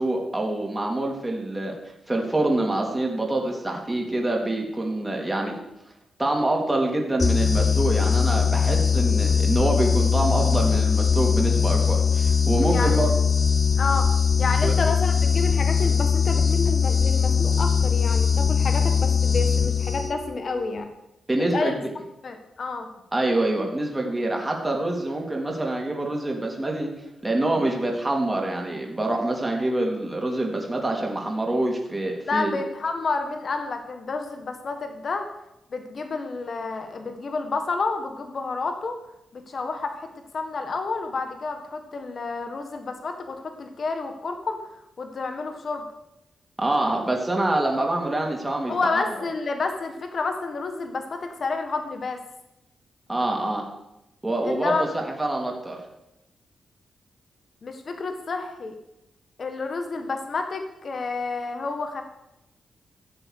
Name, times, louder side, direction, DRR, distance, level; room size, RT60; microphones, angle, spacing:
voice 1, 0.0-1.8 2.1-5.6 6.2-13.1 14.6-14.7 21.3-21.9 23.1-26.9 27.2-32.6 46.6-49.0 53.1-53.7 54.2-55.8, right 2 dB, 15° right, 0 dB, 3.1 m, -26 dB
sound 1, 7.2-20.3, left 6 dB, 30° left, 0.7 m, -21 dB
voice 2, 12.7-13.0 13.8-14.1 14.4-20.9 21.5-21.7 22.2-22.9 27.5-27.7 32.3-35.2 35.7-39.0 39.3-40.1 40.3-44.6 45.0-45.9 48.7-52.2 54.4-54.9 57.6-58.8 59.4-62.0, left 3 dB, 50° left, 6 dB, 1.5 m, -29 dB
14.5 x 7.7 x 6.6 m, 0.89 s
cardioid pair, 90°, 0 cm